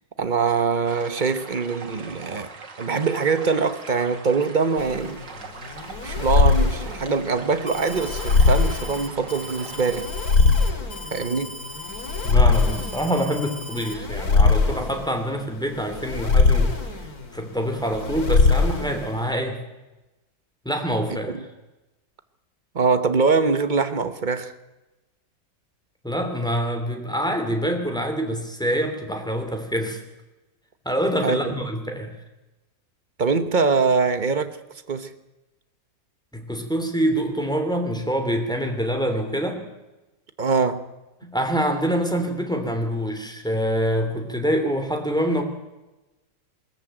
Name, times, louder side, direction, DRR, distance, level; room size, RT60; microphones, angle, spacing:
voice 1, 0.2-2.5 2.8-5.2 6.0-10.1 11.1-11.6 21.3-21.4 22.7-24.5 31.2-31.5 33.2-34.6 34.9-35.1 40.4-40.9, right 4 dB, 35° right, 1.0 m, -23 dB
sound 1, 0.8-10.0, right 4 dB, 75° right, 2.8 m, -41 dB
sound 2, 4.8-19.3, left 4 dB, 55° left, 2.8 m, -22 dB
Alarm, 7.7-13.9, left 2 dB, 20° left, 1.8 m, -38 dB
voice 2, 12.2-16.8 17.3-19.6 20.6-21.3 26.0-30.0 30.8-32.2 36.3-39.6 41.2-45.4, equal, ahead, 2.9 m, -25 dB
22.5 x 14.0 x 9.0 m
omnidirectional pair, 1.9 m